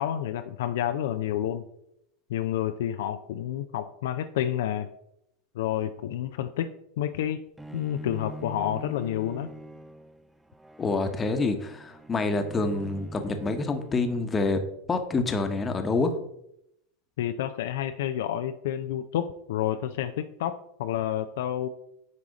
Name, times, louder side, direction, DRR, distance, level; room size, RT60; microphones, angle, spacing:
voice 1, 0.0-1.7 2.3-4.9 5.5-7.4 7.7-9.5 17.2-21.7, left 11 dB, 60° left, 9 dB, 0.4 m, -29 dB
Bowed string instrument, 7.6-14.6, right 1 dB, 5° right, 0.5 m, -44 dB
voice 2, 10.8-14.6 14.9-16.2, left 3 dB, 20° left, 7 dB, 1.0 m, -27 dB
9.6 x 4.8 x 4.1 m, 0.77 s
figure-of-eight pair, 85°, 0 cm